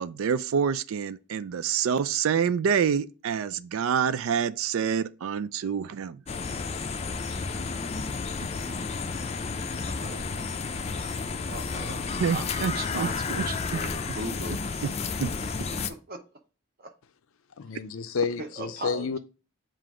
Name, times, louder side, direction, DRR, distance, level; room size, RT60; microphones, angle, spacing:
voice 1, 0.0-6.2 12.2-13.1 13.4-13.5 15.2-15.3, right 7 dB, 80° right, 0.4 m, -27 dB
sound 1, 6.3-15.9, left 4 dB, 30° left, 0.4 m, -32 dB
voice 2, 9.8-10.2 11.5-12.0 12.3-14.6 15.4-16.2 16.8-16.9 18.4-19.2, right 2 dB, 45° right, 0.9 m, -38 dB
voice 3, 17.6-19.2, left 5 dB, 80° left, 0.5 m, -30 dB
7.5 x 2.6 x 4.9 m
head